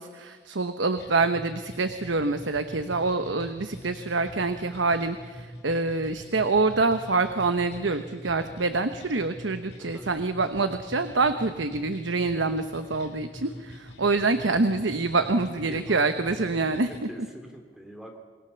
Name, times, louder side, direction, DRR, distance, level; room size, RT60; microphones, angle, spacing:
voice 1, 0.0-17.1, right 3 dB, 80° right, 9 dB, 1.0 m, -26 dB
sound 1, 1.0-17.0, equal, 65° left, 4.0 m, -44 dB
voice 2, 15.2-18.2, equal, ahead, 3 dB, 2.7 m, -45 dB
27.5 x 20.5 x 7.0 m, 1.5 s
head